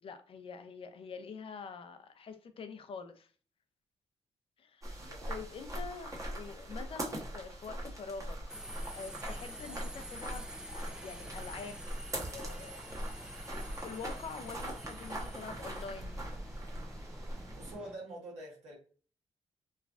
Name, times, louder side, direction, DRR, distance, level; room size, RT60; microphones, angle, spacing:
voice 1, 0.0-3.3 4.6-5.0 5.3-11.8 12.3-12.8 13.5-16.3, left 5 dB, 55° left, 8 dB, 0.5 m, -46 dB
sound 1, 4.8-17.8, right 1 dB, 30° right, 1.0 m, -42 dB
voice 2, 5.0-5.4 17.6-18.7, right 1 dB, 80° right, -2 dB, 1.4 m, -46 dB
Subway metro underground, 8.5-17.9, right 1 dB, 5° right, 0.3 m, -48 dB
3.1 x 2.3 x 2.4 m, 0.40 s
cardioid pair, 70°, 11 cm